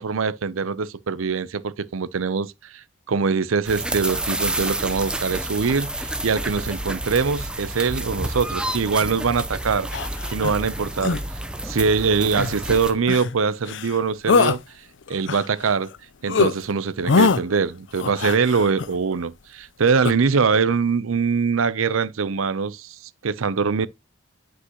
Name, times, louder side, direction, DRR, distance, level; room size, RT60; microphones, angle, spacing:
voice 1, 0.0-9.9 10.3-11.2 11.6-14.6 15.1-15.9 16.2-23.9, right 5 dB, 85° right, 0.6 m, -23 dB
sound 1, 3.6-12.9, right 1 dB, 5° right, 0.6 m, -29 dB
sound 2, 9.9-10.6 11.0-11.2 12.3-12.6 13.1-13.4 13.7-14.0 14.3-14.6 15.1-16.0 16.3-16.5 17.0-17.4 18.0-18.9 20.0-20.1, left 4 dB, 65° left, 0.5 m, -22 dB
9.9 x 5.1 x 2.9 m
head